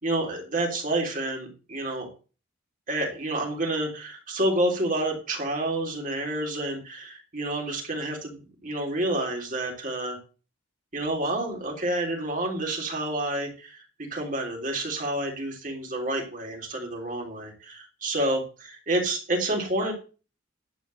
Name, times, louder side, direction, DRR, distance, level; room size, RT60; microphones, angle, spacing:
voice 1, 0.0-2.1 2.9-10.2 10.9-13.8 14.1-19.9, right 1 dB, 40° right, 1 dB, 3.5 m, -29 dB
11.5 x 4.6 x 7.7 m, 0.36 s
head